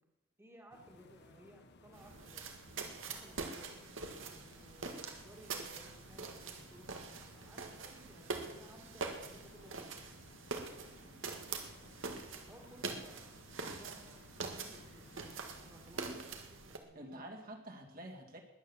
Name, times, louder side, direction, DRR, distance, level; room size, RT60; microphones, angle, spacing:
voice 1, 0.4-2.6 3.1-3.8 4.5-9.9 10.5-12.0 12.3-13.3 13.5-15.1 15.6-17.6, right 1 dB, 15° right, 1 dB, 2.1 m, -60 dB
sound 1, 0.7-16.2, left 2 dB, 60° left, 1.3 m, -60 dB
sound 2, 1.9-16.8, right 4 dB, 75° right, 2.0 m, -44 dB
voice 2, 16.9-18.4, right 1 dB, 50° right, 2 dB, 2.4 m, -48 dB
20.5 x 9.3 x 7.2 m, 0.98 s
head